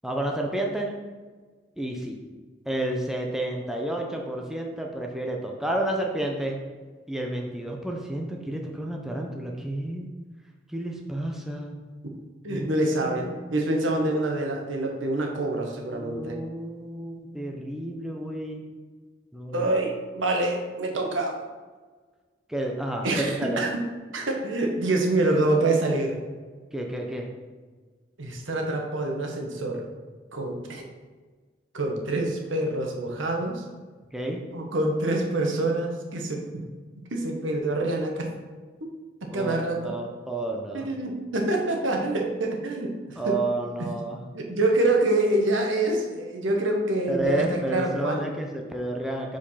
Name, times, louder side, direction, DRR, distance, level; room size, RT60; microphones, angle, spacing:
voice 1, 0.0-0.9 1.8-2.2 2.7-6.6 7.1-10.1 10.7-11.8 12.5-13.7 15.9-18.6 19.3-19.7 22.5-23.6 26.7-27.3 34.1-34.4 39.3-40.9 43.2-44.2 47.1-49.4, right 1 dB, ahead, 0 dB, 0.6 m, -31 dB
voice 2, 12.4-16.4 19.5-21.3 23.0-23.8 24.1-26.2 28.2-29.8 30.3-30.9 31.7-33.6 34.5-36.6 37.1-38.3 38.8-38.9 39.2-39.9 40.7-43.4 43.8-43.9 44.3-48.2, right 2 dB, 90° right, 1 dB, 1.1 m, -26 dB
5.1 x 4.6 x 5.5 m, 1.4 s
head